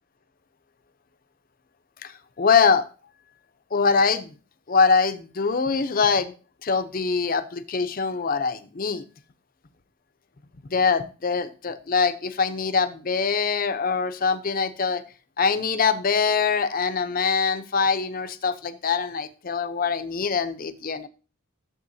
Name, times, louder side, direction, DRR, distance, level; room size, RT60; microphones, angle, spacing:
voice 1, 2.0-2.9 3.7-4.3 4.7-6.3 6.6-9.0 10.7-15.0 15.4-21.1, left 5 dB, 40° left, 10 dB, 0.6 m, -23 dB
13.5 x 7.1 x 2.7 m, 0.37 s
head